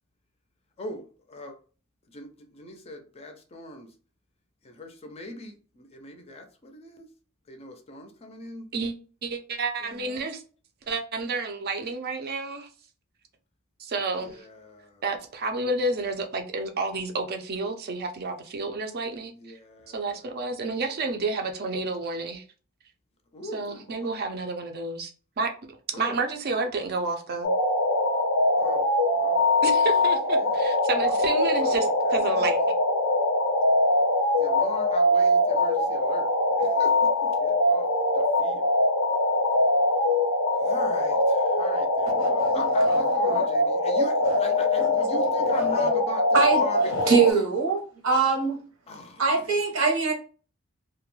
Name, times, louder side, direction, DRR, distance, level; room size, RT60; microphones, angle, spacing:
voice 1, 0.8-1.6 2.1-3.9 4.6-7.1 7.5-8.7 9.9-10.2 14.2-15.0 19.3-20.4 23.3-24.1 25.9-26.2 28.6-29.4 29.9-30.0 30.4-30.7 31.0-31.3 31.6-31.8 32.0-32.5 34.4-37.9 38.1-38.6 40.6-47.5 48.9-49.2, left 1 dB, 30° left, 0.4 m, -41 dB
voice 2, 9.2-10.4 10.9-12.7 13.8-14.4 15.0-19.3 19.9-22.4 23.5-25.1 25.4-25.5 25.9-27.5 29.6-32.6, right 3 dB, 50° right, 0.5 m, -30 dB
sound 1, 27.4-47.3, left 1 dB, 85° left, 0.5 m, -23 dB
voice 3, 42.1-42.6 43.3-43.4 46.3-46.6 47.1-47.8 48.0-48.6 49.2-50.1, right 4 dB, 80° right, 0.9 m, -22 dB
2.3 x 2.1 x 3.0 m
head